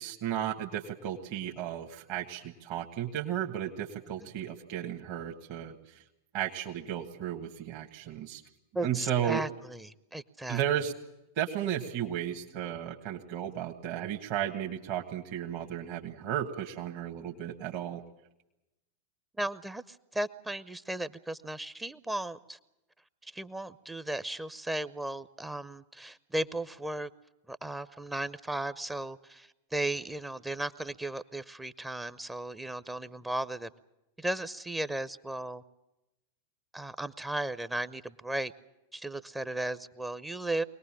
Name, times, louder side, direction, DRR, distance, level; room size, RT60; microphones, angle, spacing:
voice 1, 0.0-6.0 6.3-8.4 8.8-9.4 10.5-10.9 11.3-18.0, right 10 dB, 45° right, 2 dB, 1.6 m, -34 dB
voice 2, 8.7-10.6 19.4-22.6 23.2-27.1 27.5-33.7 34.2-35.6 36.7-38.5 38.9-40.6, right 1 dB, 10° right, 15 dB, 0.7 m, -35 dB
24.0 x 19.0 x 7.4 m, 0.94 s
figure-of-eight pair, 90°, 0 cm